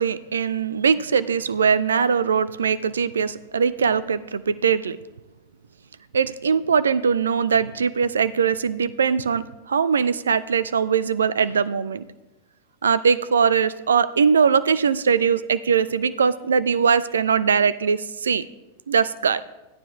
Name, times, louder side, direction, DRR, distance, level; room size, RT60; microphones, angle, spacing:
voice 1, 0.0-5.0 6.1-12.0 12.8-18.5 18.9-19.4, right 6 dB, 70° right, 17 dB, 0.3 m, -21 dB
15.5 x 9.6 x 2.5 m, 1.1 s
figure-of-eight pair, 90°, 0 cm